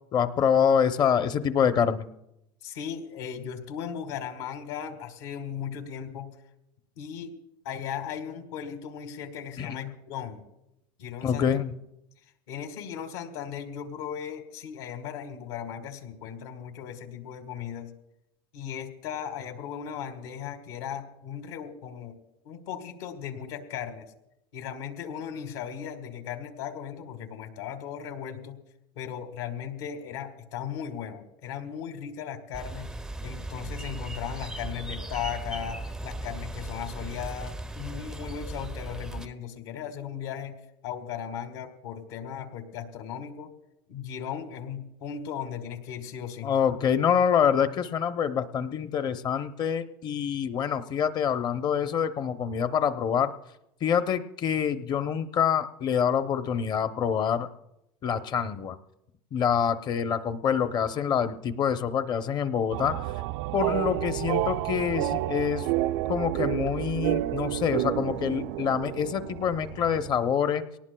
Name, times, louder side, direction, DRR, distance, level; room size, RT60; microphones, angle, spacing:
voice 1, 0.1-2.1 9.6-9.8 11.2-11.7 46.4-53.3 53.8-57.5 58.0-58.8 59.3-63.0 63.5-65.7 66.1-70.6, left 8 dB, 35° left, 11 dB, 0.7 m, -26 dB
voice 2, 2.6-6.4 7.0-7.4 7.7-10.4 11.0-11.5 12.5-17.9 18.5-22.2 22.5-24.1 24.5-28.6 29.0-32.9 33.2-40.6 40.8-43.5 43.9-46.5, left 8 dB, 80° left, 6 dB, 1.7 m, -37 dB
sound 1, 32.5-39.3, right 2 dB, 5° right, 0.4 m, -37 dB
sound 2, 62.7-70.2, right 15 dB, 75° right, 0.4 m, -30 dB
24.0 x 18.5 x 2.3 m, 0.86 s
supercardioid pair, 140°, 13 cm